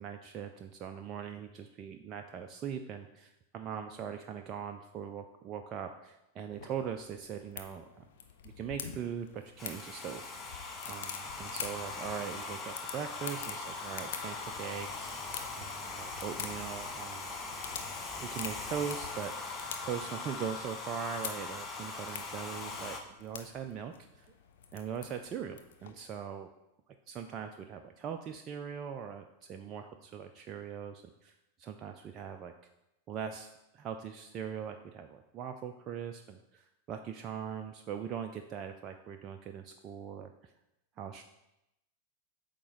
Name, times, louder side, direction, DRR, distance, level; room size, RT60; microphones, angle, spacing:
voice 1, 0.0-8.1 8.4-10.3 10.9-15.3 15.6-17.3 18.2-24.3 24.7-26.5 27.1-31.3 31.6-32.5 33.1-40.5 41.0-41.2, right 7 dB, 30° right, 5 dB, 0.4 m, -41 dB
sound 1, 6.5-25.9, left 7 dB, 55° left, 0.6 m, -47 dB
Domestic sounds home sounds, 9.6-23.0, left 3 dB, 20° left, 0.9 m, -41 dB
8.3 x 3.0 x 5.2 m, 0.90 s
figure-of-eight pair, 90°, 0 cm